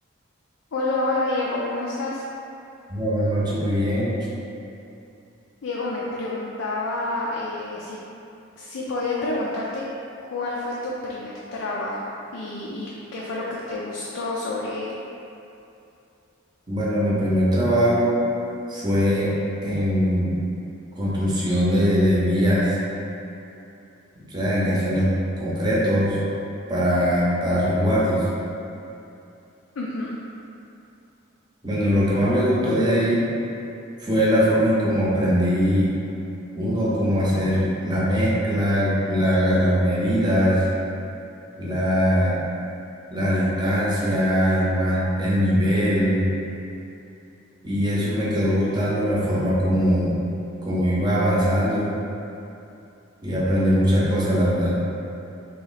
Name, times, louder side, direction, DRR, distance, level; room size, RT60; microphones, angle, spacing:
voice 1, 0.7-2.3 5.6-8.0 8.6-9.8 10.2-15.0 29.8-30.1, left 2 dB, 75° left, -5 dB, 0.4 m, -28 dB
voice 2, 2.9-4.1 16.7-18.2 18.7-19.3 19.6-20.4 21.0-22.8 24.3-25.1 25.4-26.2 26.7-28.2 31.6-33.3 34.0-35.9 36.5-40.6 41.6-42.4 43.1-46.3 47.6-50.2 50.6-51.9 53.2-54.8, equal, 20° right, -7 dB, 0.7 m, -21 dB
3.0 x 2.9 x 4.0 m, 2.7 s
head